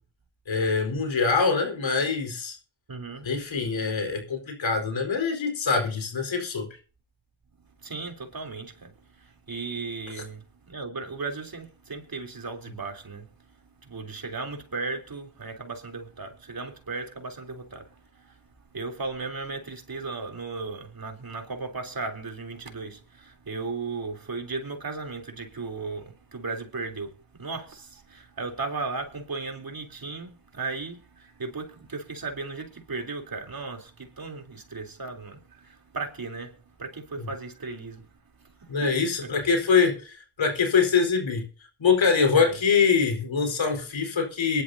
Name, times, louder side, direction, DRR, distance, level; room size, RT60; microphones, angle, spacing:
voice 1, 0.5-2.6 3.2-6.7 37.2-37.3 38.7-41.4 41.8-44.6, left 5 dB, 65° left, 4.5 m, -24 dB
voice 2, 2.9-3.3 7.8-8.9 9.5-13.3 13.8-17.9 18.7-27.1 27.4-38.1 38.6-39.3 42.3-42.6, right 3 dB, 45° right, 3.5 m, -36 dB
23.0 x 11.5 x 2.8 m
cardioid pair, 50°, 48 cm